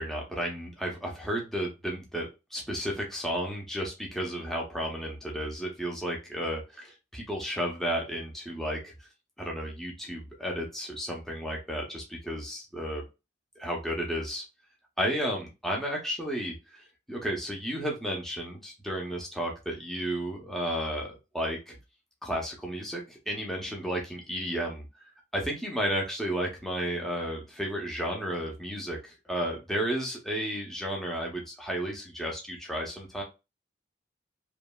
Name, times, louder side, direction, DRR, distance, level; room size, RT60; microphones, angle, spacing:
voice 1, 0.0-8.9 9.4-13.0 13.6-14.4 15.0-21.8 22.2-24.8 25.3-33.2, equal, ahead, -1 dB, 0.5 m, -33 dB
2.8 x 2.4 x 2.2 m, 0.26 s
head